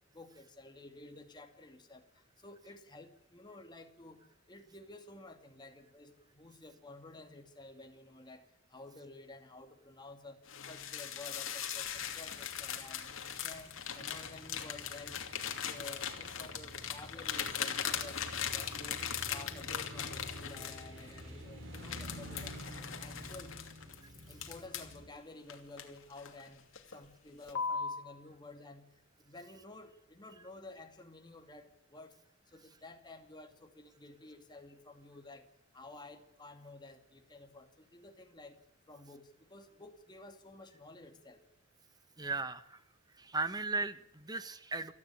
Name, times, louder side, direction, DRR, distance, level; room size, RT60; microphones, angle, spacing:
voice 1, 0.1-18.2 18.5-19.0 19.3-22.6 23.0-23.6 24.3-28.9 29.2-32.2 32.5-35.5 35.7-38.6 38.9-41.4, left 2 dB, 20° left, 5 dB, 2.5 m, -52 dB
sound 1, 10.5-21.3 21.7-25.0 25.5-26.4 26.8-27.0 27.5-28.1, left 8 dB, 70° left, 2.7 m, -39 dB
sound 2, 11.8-25.1, equal, 65° right, 6.5 m, -50 dB
voice 2, 42.2-42.8 43.2-44.9, right 3 dB, 20° right, 12 dB, 1.2 m, -36 dB
29.0 x 10.5 x 8.8 m, 0.83 s
head